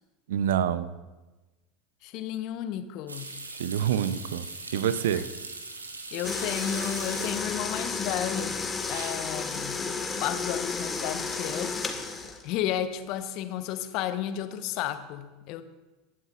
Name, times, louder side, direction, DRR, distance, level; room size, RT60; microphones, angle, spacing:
voice 1, 0.3-0.9 3.6-4.5 4.7-5.3 8.9-9.2, right 9 dB, 70° right, 15 dB, 0.6 m, -27 dB
voice 2, 2.0-3.3 6.1-8.6 8.9-9.8 10.2-11.8 12.4-15.6, left 11 dB, 50° left, 10 dB, 1.0 m, -32 dB
sound 1, 3.1-7.7 8.0-8.6 9.0-9.1 11.8-12.2 12.5-13.0, right 3 dB, 90° right, 1.3 m, -41 dB
sound 2, 6.2-12.5, left 4 dB, 20° left, 1.7 m, -32 dB
21.5 x 12.0 x 2.5 m, 1.1 s
figure-of-eight pair, 80°, 0 cm